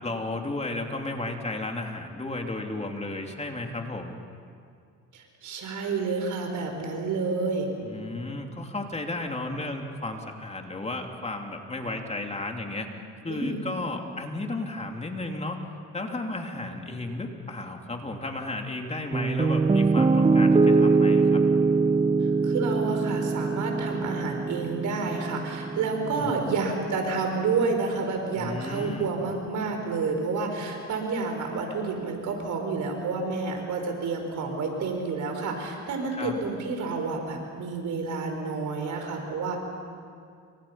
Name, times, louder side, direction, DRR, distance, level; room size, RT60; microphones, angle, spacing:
voice 1, 0.0-4.2 7.8-12.9 13.2-15.6 15.9-21.4 26.1-26.4 28.3-29.1 36.1-36.3, left 2 dB, 20° left, 2 dB, 3.0 m, -33 dB
voice 2, 5.1-7.7 13.3-13.6 22.2-39.6, right 4 dB, 75° right, 3 dB, 4.9 m, -29 dB
Piano, 19.1-27.2, right 4 dB, 20° right, 0.6 m, -23 dB
29.0 x 25.0 x 5.8 m, 2.3 s
cardioid pair, 90°, 30 cm